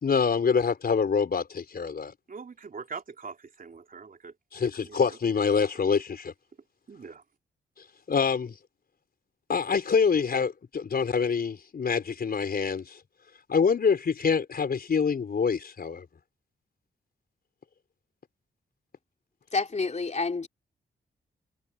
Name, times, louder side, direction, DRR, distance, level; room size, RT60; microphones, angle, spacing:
voice 1, 0.0-2.1 4.5-6.3 8.1-8.6 9.5-13.0 13.5-16.0, left 6 dB, 55° left, 4.5 m, -25 dB
voice 2, 2.3-4.3 4.8-5.0 6.9-7.2, right 5 dB, 50° right, 3.2 m, -42 dB
voice 3, 19.5-20.5, left 4 dB, 40° left, 3.2 m, -28 dB
cardioid pair, 65°, 18 cm